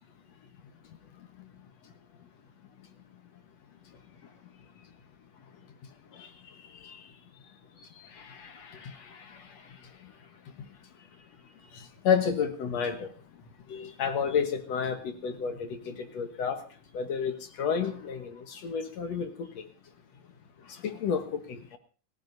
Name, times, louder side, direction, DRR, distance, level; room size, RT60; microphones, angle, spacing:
voice 1, 6.7-7.1 8.1-9.6 11.7-13.1 13.7-16.6 16.9-19.6 20.7-21.8, left 6 dB, 60° left, 2.2 m, -31 dB
29.5 x 15.0 x 2.7 m
omnidirectional pair, 3.6 m